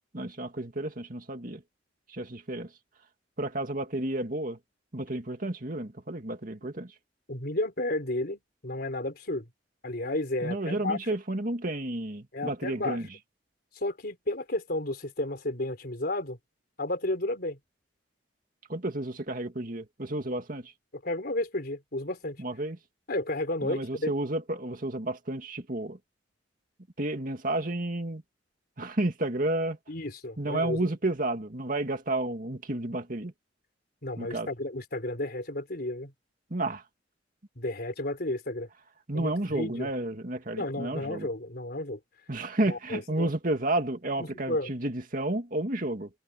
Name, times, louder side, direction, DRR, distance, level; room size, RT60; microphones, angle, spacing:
voice 1, 0.1-1.6 2.1-2.7 3.4-4.6 4.9-6.9 10.4-13.0 18.7-20.7 22.4-22.8 23.6-26.0 27.0-28.2 28.8-29.8 30.4-33.3 34.2-34.5 36.5-36.8 39.1-41.3 42.3-46.1, right 1 dB, 45° right, 2.3 m, -31 dB
voice 2, 7.3-9.5 9.8-11.2 12.3-13.0 13.8-16.4 16.8-17.6 21.0-22.4 23.1-24.1 29.9-30.9 34.0-36.1 37.6-38.7 39.1-39.9 40.6-42.0 42.7-43.3 44.2-44.7, left 1 dB, 55° left, 4.1 m, -32 dB
head